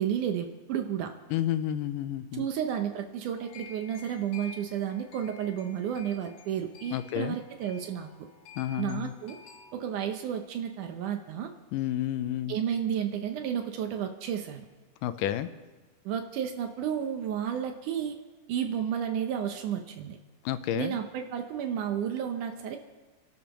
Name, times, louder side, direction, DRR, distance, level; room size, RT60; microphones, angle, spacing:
voice 1, 0.0-1.1 2.3-8.1 8.8-9.4 9.7-11.5 12.5-14.7 16.1-18.2 18.5-20.2 20.8-22.8, right 9 dB, 75° right, 5 dB, 2.2 m, -32 dB
voice 2, 1.3-2.5 6.9-7.4 8.6-9.1 11.7-12.6 15.0-15.5 20.5-21.0, left 11 dB, 90° left, 11 dB, 2.3 m, -30 dB
sound 1, 3.4-9.7, left 5 dB, 65° left, 3.1 m, -51 dB
30.0 x 12.0 x 3.0 m, 1.3 s
omnidirectional pair, 3.8 m